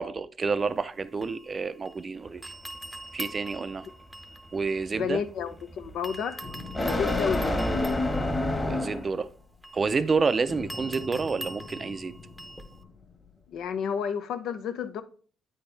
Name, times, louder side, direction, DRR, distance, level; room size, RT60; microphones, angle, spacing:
voice 1, 0.0-2.4 3.1-3.9 4.5-5.2 8.6-9.3 9.7-12.1, right 4 dB, 35° right, 0.5 m, -29 dB
sound 1, 0.6-2.1 2.4-5.6 6.0-12.8, right 1 dB, ahead, 0.8 m, -44 dB
sound 2, 2.2-9.2, left 2 dB, 20° left, 1.4 m, -30 dB
voice 2, 4.9-6.5 6.8-7.6 13.5-15.0, left 7 dB, 80° left, 0.6 m, -31 dB
sound 3, 6.4-10.0 10.5-13.8, left 4 dB, 40° left, 1.2 m, -46 dB
8.6 x 4.3 x 3.3 m
cardioid pair, 110°, 0 cm